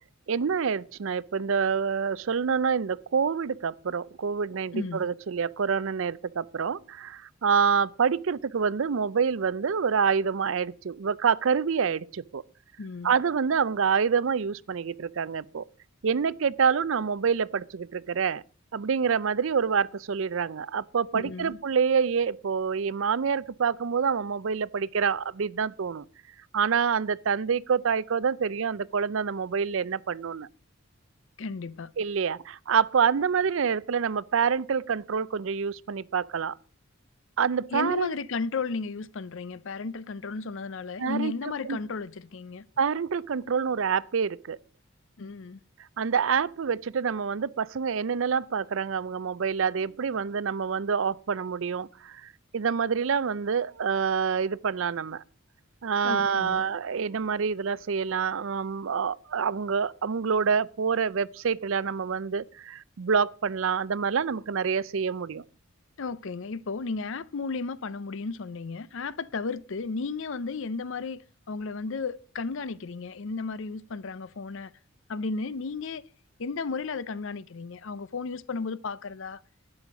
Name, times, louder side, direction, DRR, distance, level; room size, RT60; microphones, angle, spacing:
voice 1, 0.3-12.4 13.0-15.6 16.0-18.4 18.7-26.0 26.5-30.5 32.0-36.6 37.4-38.1 41.0-41.3 41.6-41.8 42.8-44.6 46.0-55.2 55.8-65.4, right 6 dB, 65° right, 0.5 m, -27 dB
voice 2, 4.7-5.1 12.8-13.1 21.1-21.6 31.4-31.9 37.7-42.7 45.2-45.6 56.0-56.6 66.0-71.2 71.5-74.7 75.1-76.0 76.4-79.4, left 4 dB, 60° left, 0.5 m, -34 dB
12.0 x 9.8 x 5.1 m
head